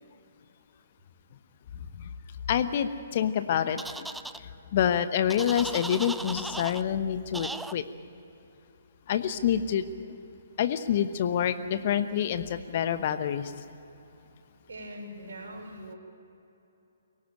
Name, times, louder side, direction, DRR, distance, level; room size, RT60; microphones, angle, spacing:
voice 1, 2.5-4.1 4.7-7.8 9.1-10.2 10.6-13.5, left 9 dB, 40° left, 11 dB, 1.0 m, -27 dB
sound 1, 3.8-4.4 5.3-6.8 7.3-7.7, right 2 dB, 5° right, 0.5 m, -37 dB
voice 2, 14.7-16.0, equal, 60° right, 0 dB, 5.7 m, -42 dB
23.5 x 17.5 x 9.2 m, 2.9 s
figure-of-eight pair, 130°, 0 cm